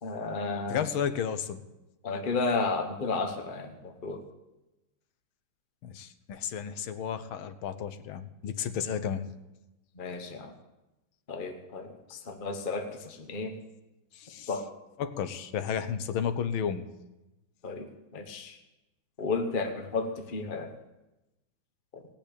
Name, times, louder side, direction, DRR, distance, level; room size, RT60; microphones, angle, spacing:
voice 1, 0.0-0.8 2.0-4.2 10.0-10.5 11.3-13.5 14.5-14.6 17.6-18.6 19.2-20.7 21.9-22.0, left 3 dB, 30° left, 5 dB, 1.0 m, -33 dB
voice 2, 0.7-1.6 5.8-9.3 14.1-14.5 15.0-16.9, left 8 dB, 80° left, 11 dB, 1.7 m, -32 dB
17.5 x 6.0 x 8.5 m, 0.99 s
omnidirectional pair, 2.2 m